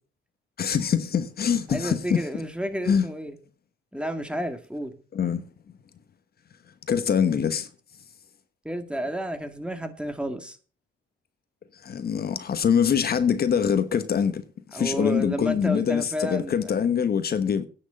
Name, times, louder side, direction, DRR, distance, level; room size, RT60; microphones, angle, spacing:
voice 1, 0.6-2.3 2.9-3.1 5.1-5.4 6.9-7.7 11.8-14.4 14.7-17.7, left 7 dB, 50° left, 1.2 m, -24 dB
voice 2, 1.7-3.4 3.9-5.0 8.6-10.6 14.7-16.7, equal, 5° right, 2.0 m, -31 dB
10.0 x 6.4 x 8.7 m
cardioid pair, 90°, 20 cm